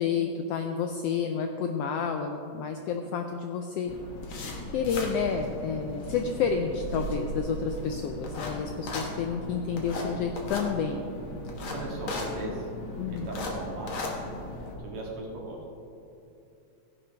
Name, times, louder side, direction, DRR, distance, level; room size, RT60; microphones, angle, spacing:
voice 1, 0.0-3.9 4.7-11.1 13.0-13.3, left 6 dB, 85° left, 5 dB, 1.4 m, -30 dB
sound 1, 3.9-14.7, left 1 dB, 50° left, 1.8 m, -36 dB
voice 2, 11.7-12.7 13.1-14.0 14.8-15.6, right 1 dB, 70° right, -2 dB, 3.0 m, -37 dB
15.5 x 10.0 x 3.4 m, 2.7 s
omnidirectional pair, 3.3 m